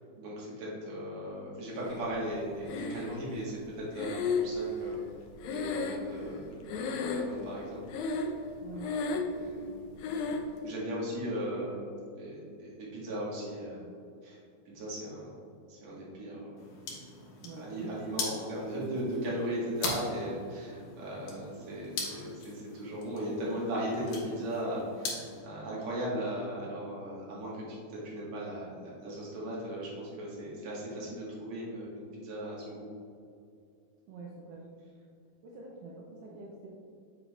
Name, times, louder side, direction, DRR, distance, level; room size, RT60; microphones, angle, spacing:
voice 1, 0.2-5.0 5.5-8.3 8.8-9.1 9.4-10.2 10.6-13.8 14.2-14.4 14.7-15.3 15.7-16.5 17.1-17.2 17.6-32.8, equal, 55° right, -6 dB, 2.4 m, -37 dB
Breathing, 2.7-3.4 4.0-6.4 6.7-7.5 7.9-8.5 8.7-9.4 10.0-10.5, left 4 dB, 85° left, 2.1 m, -33 dB
sound 1, 16.6-25.4, left 3 dB, 65° left, 2.1 m, -41 dB
voice 2, 17.4-17.9 34.1-34.6 35.4-36.7, right 3 dB, 80° right, -3 dB, 2.0 m, -46 dB
8.1 x 5.5 x 2.5 m, 2.4 s
omnidirectional pair, 4.5 m